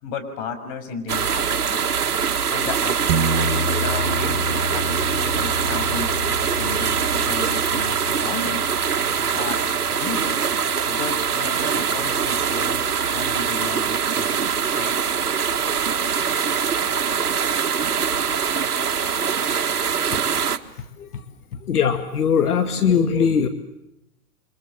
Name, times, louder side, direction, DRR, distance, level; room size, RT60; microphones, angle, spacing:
voice 1, 0.0-1.8 2.5-8.6 9.3-9.6 10.0-10.2 10.9-14.5 14.8-15.0, left 4 dB, 40° left, 7 dB, 6.2 m, -34 dB
sound 1, 1.1-20.6, right 7 dB, 90° right, 1.8 m, -23 dB
sound 2, 3.1-13.1, right 1 dB, 45° right, 2.0 m, -31 dB
voice 2, 21.5-23.5, left 7 dB, 80° left, 7 dB, 2.4 m, -20 dB
29.0 x 25.5 x 7.5 m, 0.83 s
hypercardioid pair, 125°, 45 cm